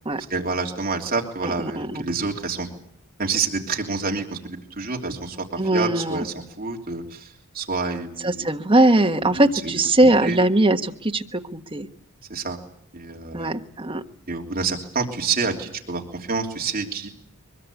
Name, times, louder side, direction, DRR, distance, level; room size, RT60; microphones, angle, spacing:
voice 1, 0.3-2.7 3.2-7.3 7.5-8.5 9.6-9.7 10.0-10.4 12.3-12.6 12.9-13.5 14.3-17.1, right 4 dB, 40° right, 0 dB, 3.1 m, -28 dB
voice 2, 1.4-2.0 5.6-6.2 8.2-11.9 13.3-14.0, right 1 dB, 25° right, 4 dB, 1.4 m, -20 dB
23.5 x 22.0 x 8.4 m, 0.69 s
head